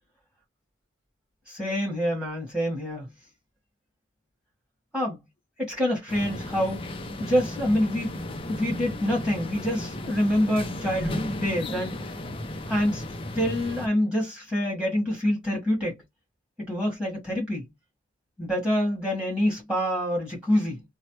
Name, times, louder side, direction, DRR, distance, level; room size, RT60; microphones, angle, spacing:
voice 1, 1.5-3.1 4.9-5.2 5.6-6.8 7.2-11.9 12.7-13.0 13.3-16.0 16.7-17.7 18.4-20.8, equal, 5° right, 1.7 m, -26 dB
sound 1, 6.1-13.9, left 1 dB, 30° left, 0.5 m, -34 dB
3.1 x 2.1 x 3.0 m
head